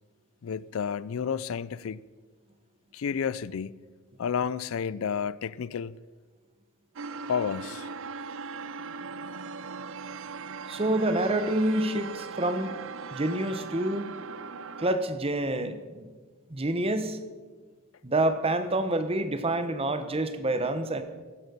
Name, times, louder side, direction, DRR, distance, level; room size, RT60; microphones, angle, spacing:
voice 1, 0.4-2.0 2.9-3.7 4.2-5.9 7.3-7.9, left 7 dB, 65° left, 0.4 m, -31 dB
sound 1, 7.0-15.0, right 5 dB, 60° right, 0.5 m, -39 dB
voice 2, 10.7-12.7 13.1-14.1 14.8-16.1 16.5-17.2 18.0-21.0, right 1 dB, 25° right, 1.0 m, -27 dB
16.5 x 8.5 x 6.8 m
head